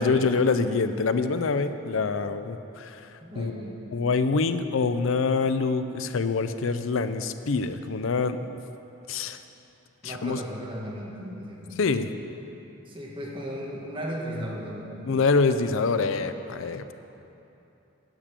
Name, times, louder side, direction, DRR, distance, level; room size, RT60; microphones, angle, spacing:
voice 1, 0.0-3.0 3.4-3.5 3.9-8.5 9.1-9.4 10.0-10.4 11.8-12.1 15.1-16.8, left 4 dB, 75° left, 10 dB, 0.5 m, -25 dB
voice 2, 3.2-3.8 10.0-11.9 12.8-15.1, equal, 25° right, -3 dB, 1.5 m, -36 dB
8.9 x 6.7 x 8.3 m, 3.0 s
head